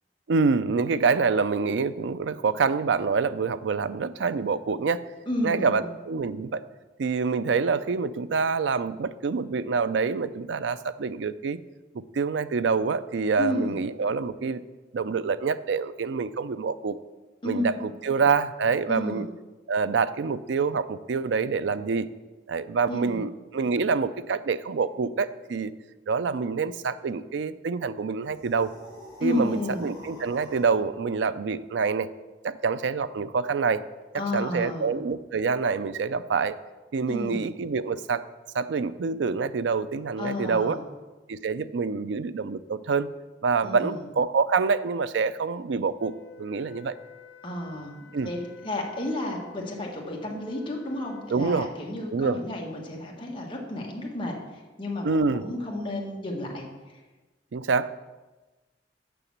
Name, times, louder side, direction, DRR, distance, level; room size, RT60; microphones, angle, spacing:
voice 1, 0.3-5.0 5.4-6.6 7.0-11.6 12.1-14.6 14.9-17.0 17.4-17.7 18.0-19.3 19.7-22.1 22.5-25.7 26.1-28.7 29.2-32.1 32.4-33.8 34.1-36.6 36.9-38.2 38.5-40.8 41.3-43.1 43.4-46.1 46.4-46.9 48.1-48.3 51.3-51.7 52.1-52.4 55.0-55.5 57.5-57.9, right 5 dB, 85° right, 14 dB, 0.4 m, -26 dB
voice 2, 5.3-5.9 13.4-13.8 17.4-17.7 18.9-19.2 22.9-23.2 29.2-29.8 34.1-34.9 37.1-37.4 40.2-40.8 43.6-44.0 47.4-48.4 48.6-56.7 56.9-57.0, left 1 dB, 30° left, -2 dB, 1.6 m, -32 dB
sound 1, 28.2-30.8, equal, 25° right, 3.1 m, -46 dB
Wind instrument woodwind instrument, 46.0-51.4, left 5 dB, 90° left, 1.1 m, -50 dB
6.9 x 6.0 x 7.2 m, 1.2 s
head